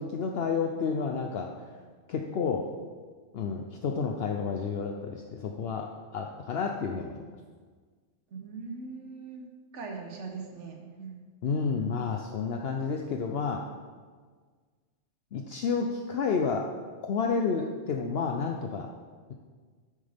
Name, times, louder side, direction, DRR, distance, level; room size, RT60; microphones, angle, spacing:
voice 1, 0.0-1.5 2.1-2.7 3.3-7.2 11.4-13.6 15.3-16.7 17.0-18.9, left 5 dB, 65° left, 2 dB, 0.8 m, -30 dB
voice 2, 8.3-9.5 9.7-11.2, right 4 dB, 85° right, 2 dB, 1.3 m, -40 dB
9.9 x 9.2 x 3.5 m, 1.5 s
omnidirectional pair, 1.2 m